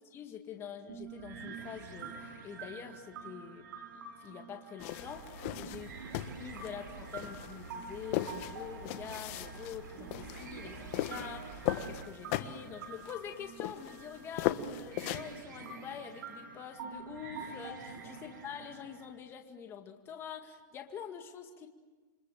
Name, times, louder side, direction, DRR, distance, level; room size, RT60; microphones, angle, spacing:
voice 1, 0.0-21.7, left 8 dB, 25° left, 4 dB, 2.2 m, -46 dB
sound 1, 0.9-19.1, right 5 dB, 70° right, 7.0 m, -47 dB
sound 2, 4.8-15.4, left 14 dB, 45° left, 1.5 m, -38 dB
sound 3, 5.0-12.1, right 5 dB, 85° right, 4.0 m, -50 dB
28.5 x 25.0 x 7.6 m, 1.3 s
hypercardioid pair, 140°, 10 cm